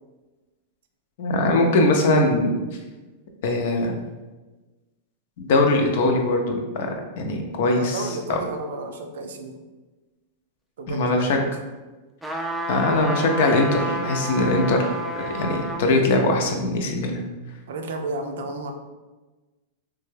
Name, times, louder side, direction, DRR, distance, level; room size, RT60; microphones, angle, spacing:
voice 1, 1.2-2.6 3.4-4.0 5.4-8.0 8.3-8.4 10.9-11.4 12.7-14.9 15.1-17.2, left 2 dB, 65° left, 3 dB, 0.6 m, -21 dB
voice 2, 7.7-9.6 10.8-11.6 17.7-18.7, right 2 dB, 75° right, 4 dB, 0.5 m, -32 dB
sound 1, 12.2-15.9 16.4-16.5, right 1 dB, ahead, 0.4 m, -30 dB
3.3 x 2.2 x 3.2 m, 1.2 s
hypercardioid pair, 120°, 0 cm